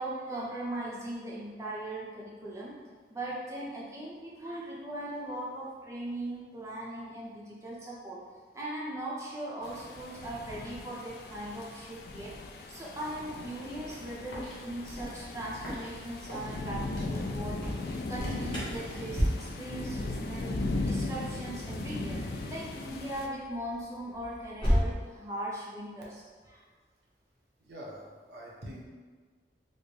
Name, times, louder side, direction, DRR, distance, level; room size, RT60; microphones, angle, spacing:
voice 1, 0.0-2.7 3.1-8.2 8.5-12.3 12.7-17.6 18.1-26.2 26.5-26.6, right 1 dB, 15° right, -6 dB, 0.6 m, -39 dB
sound 1, 9.6-23.3, left 2 dB, 55° left, 0.3 m, -37 dB
sound 2, 13.7-19.2, equal, 90° left, 1.3 m, -39 dB
Alarm, 18.1-24.9, equal, 25° left, 0.9 m, -36 dB
voice 2, 27.6-28.8, equal, 70° right, -4 dB, 0.8 m, -45 dB
4.2 x 2.1 x 3.2 m, 1.5 s
head